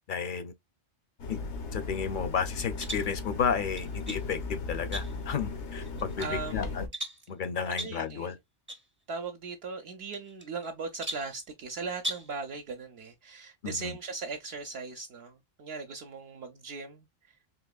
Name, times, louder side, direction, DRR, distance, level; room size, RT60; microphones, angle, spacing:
voice 1, 0.1-0.5 1.3-1.4 1.7-6.6 7.3-8.4 13.6-14.0, left 6 dB, 55° left, 0.7 m, -32 dB
sound 1, 1.2-6.9, left 3 dB, 85° left, 1.1 m, -37 dB
sound 2, 2.8-3.1 3.8-4.3 4.9-5.3 5.8-6.4 6.9-7.3 7.8-8.0 8.7-8.9 9.1-9.2 10.1-10.7 11.0-11.4 12.0-12.4, right 1 dB, 15° right, 0.6 m, -38 dB
voice 2, 6.2-6.8 7.6-8.3 9.1-17.1, right 4 dB, 65° right, 0.8 m, -38 dB
3.9 x 2.9 x 2.3 m
omnidirectional pair, 1.2 m